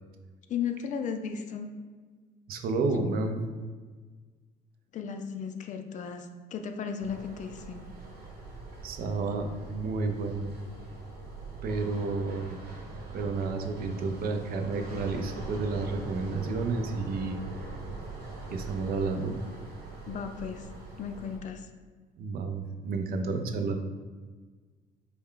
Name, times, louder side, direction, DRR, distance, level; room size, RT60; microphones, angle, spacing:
voice 1, 0.5-1.7 4.9-7.8 20.1-20.7 21.0-21.7, left 7 dB, 45° left, 6 dB, 0.4 m, -35 dB
voice 2, 2.5-3.4 8.8-10.5 11.6-12.6 13.1-17.6 18.5-19.4 22.2-23.8, right 3 dB, 65° right, 5 dB, 0.5 m, -31 dB
sound 1, 7.0-21.4, right 2 dB, 85° right, 1.0 m, -42 dB
4.4 x 2.3 x 3.6 m, 1.4 s
cardioid pair, 110°, 17 cm